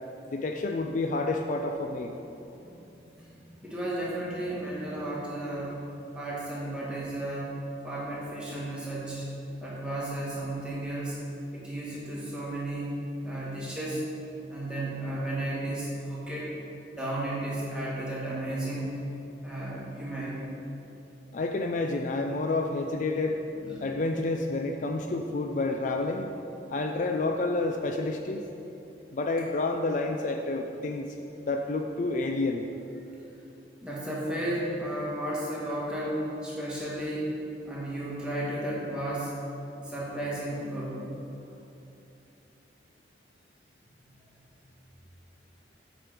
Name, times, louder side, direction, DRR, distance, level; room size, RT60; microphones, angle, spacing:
voice 1, 0.3-2.1 21.3-23.4 23.8-26.3 26.7-28.4 29.1-31.2 31.5-32.6, left 2 dB, 45° left, 4 dB, 0.4 m, -29 dB
voice 2, 2.4-2.8 3.2-5.8 6.1-7.6 7.8-9.2 9.6-11.2 11.5-13.0 13.2-14.0 14.5-16.5 16.9-18.9 19.4-20.4 23.6-23.9 33.8-37.3 37.6-39.3 39.8-41.0, right 1 dB, 5° right, -7 dB, 1.7 m, -33 dB
7.7 x 5.1 x 5.9 m, 2.8 s
head